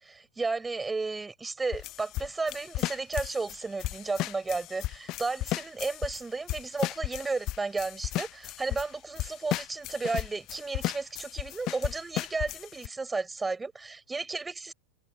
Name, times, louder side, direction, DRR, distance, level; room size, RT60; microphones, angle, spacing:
voice 1, 0.0-14.7, right 3 dB, 10° right, 6.3 m, -33 dB
sound 1, 1.7-6.2 6.5-8.9 9.2-12.9, left 17 dB, 35° left, 0.7 m, -34 dB
figure-of-eight pair, 90°, 0 cm